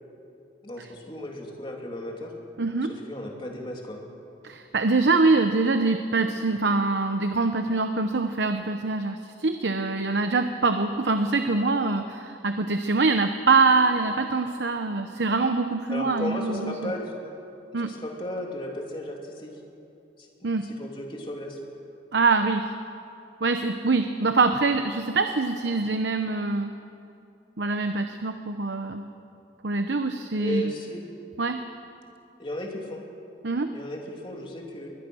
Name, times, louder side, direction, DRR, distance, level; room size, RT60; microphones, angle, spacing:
voice 1, 0.6-2.3 2.9-4.0 15.9-17.2 17.8-19.6 20.2-21.6 30.4-31.0 32.4-33.1 33.7-34.9, left 1 dB, 30° left, 0 dB, 2.8 m, -35 dB
voice 2, 2.6-2.9 4.4-16.9 17.7-17.9 20.4-20.7 22.1-22.7 23.4-26.7 27.6-29.1 29.6-30.7 31.4-31.6 33.4-33.7, right 3 dB, 80° right, 7 dB, 0.9 m, -24 dB
22.0 x 20.5 x 6.3 m, 2.7 s
head